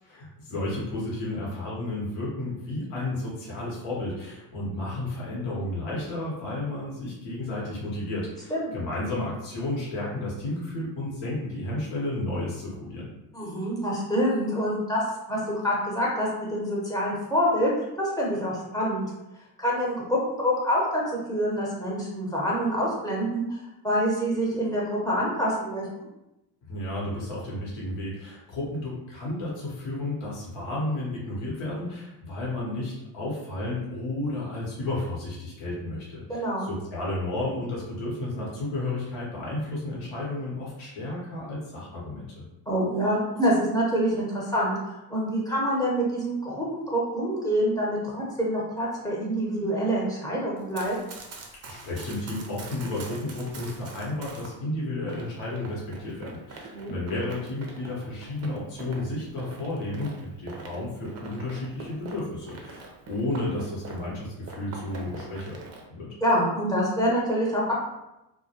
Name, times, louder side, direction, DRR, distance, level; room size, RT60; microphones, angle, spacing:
voice 1, 0.0-13.1 26.7-42.4 51.7-65.6 65.9-66.1, left 2 dB, 65° left, -5 dB, 1.1 m, -32 dB
voice 2, 13.3-15.0 15.3-19.1 19.6-21.0 21.3-23.6 23.8-26.1 36.3-36.7 42.7-50.9 56.7-56.9 66.2-67.7, equal, 10° left, -6 dB, 0.9 m, -26 dB
Run, 50.6-54.5 55.1-64.2 64.5-65.8, right 3 dB, 30° right, 0.5 m, -44 dB
2.2 x 2.1 x 2.8 m, 0.93 s
supercardioid pair, 75°, 49 cm